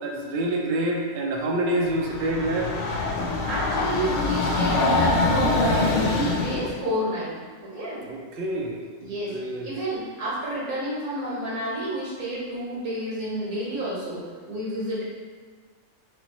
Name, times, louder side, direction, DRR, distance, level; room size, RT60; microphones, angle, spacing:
voice 1, 0.0-2.7 8.0-9.7, right 1 dB, 60° right, 0 dB, 0.6 m, -27 dB
Train, 1.9-6.8, left 3 dB, 65° left, 0.8 m, -24 dB
voice 2, 3.4-7.4 7.6-8.0 9.0-9.4 9.6-15.0, right 1 dB, 85° right, -7 dB, 1.7 m, -29 dB
4.0 x 3.2 x 3.0 m, 1.5 s
omnidirectional pair, 1.5 m